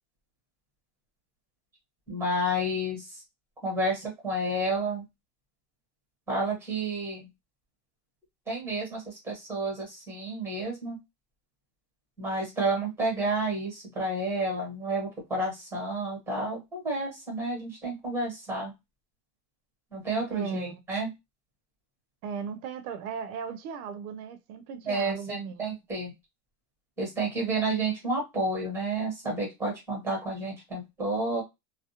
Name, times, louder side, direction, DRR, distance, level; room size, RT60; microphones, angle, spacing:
voice 1, 2.1-3.2 3.6-5.0 6.3-7.3 8.5-11.0 12.2-18.7 19.9-21.1 24.8-26.1 27.0-31.4, right 2 dB, 5° right, 1.0 m, -30 dB
voice 2, 20.3-20.8 22.2-25.6, right 6 dB, 80° right, 0.6 m, -37 dB
2.3 x 2.0 x 2.7 m
cardioid pair, 170°, 43 cm